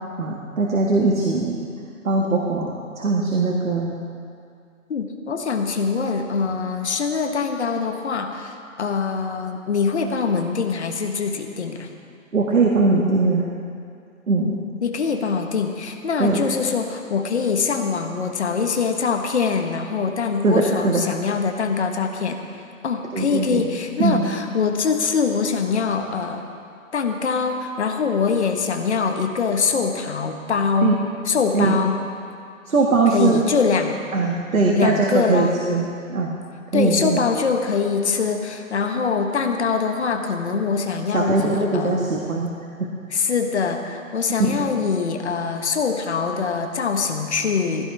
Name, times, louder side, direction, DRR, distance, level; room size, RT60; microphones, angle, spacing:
voice 1, 0.2-1.6 2.0-4.0 12.3-13.4 14.3-14.5 16.2-16.4 20.4-21.0 23.1-23.6 24.0-24.2 30.8-30.9 31.5-31.8 32.7-33.4 34.1-35.8 36.1-36.3 36.7-37.2 41.1-42.5 42.8-42.9 44.4-44.6, right 3 dB, 75° right, -1 dB, 1.8 m, -20 dB
voice 2, 4.9-11.9 14.4-22.4 22.8-26.4 26.9-32.0 33.1-34.0 34.7-35.5 36.7-42.1 43.1-47.9, left 5 dB, 55° left, 5 dB, 1.4 m, -23 dB
16.0 x 16.0 x 3.5 m, 2.4 s
figure-of-eight pair, 145°, 41 cm